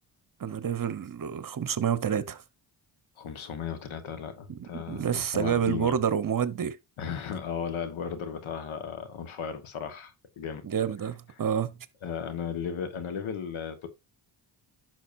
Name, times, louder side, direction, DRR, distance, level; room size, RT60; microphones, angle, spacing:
voice 1, 0.4-2.4 4.5-6.8 10.6-11.8, right 8 dB, 45° right, 1.0 m, -28 dB
voice 2, 3.2-6.0 7.0-10.7 12.0-13.9, left 7 dB, 80° left, 1.6 m, -35 dB
10.5 x 6.3 x 2.7 m
cardioid pair, 70°, 48 cm